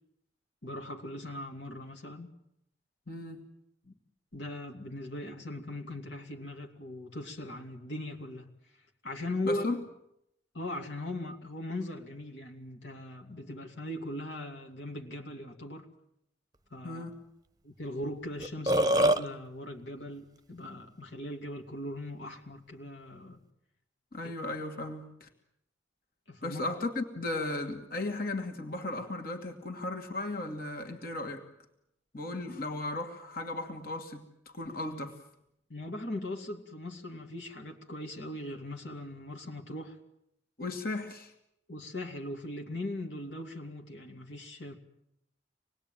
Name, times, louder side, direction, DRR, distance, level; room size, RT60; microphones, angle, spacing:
voice 1, 0.6-2.3 3.8-3.9 4.3-9.6 10.5-15.9 16.7-17.0 17.6-23.4 24.2-24.3 26.3-26.6 35.7-40.0 41.7-44.7, left 1 dB, 70° left, 2 dB, 2.6 m, -39 dB
voice 2, 3.1-3.5 9.4-9.8 16.8-17.2 24.1-25.3 26.4-31.4 32.1-34.3 34.5-35.2 40.6-41.3, left 2 dB, 50° left, 5 dB, 2.6 m, -36 dB
Burping eructation, 18.0-18.1 18.4-19.2, right 1 dB, 20° right, 0.9 m, -23 dB
26.5 x 20.0 x 9.2 m, 0.78 s
head